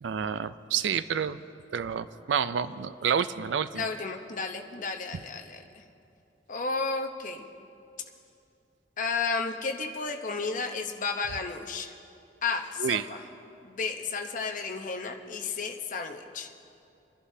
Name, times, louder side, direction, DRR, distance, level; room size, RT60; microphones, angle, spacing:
voice 1, 0.0-1.4 1.7-3.9 12.8-13.1, right 7 dB, 90° right, 14 dB, 0.4 m, -29 dB
voice 2, 3.7-5.8 6.5-7.5 9.0-12.0 12.4-13.2 13.6-16.5, left 4 dB, 45° left, 4 dB, 0.8 m, -32 dB
25.5 x 11.5 x 2.8 m, 2.6 s
head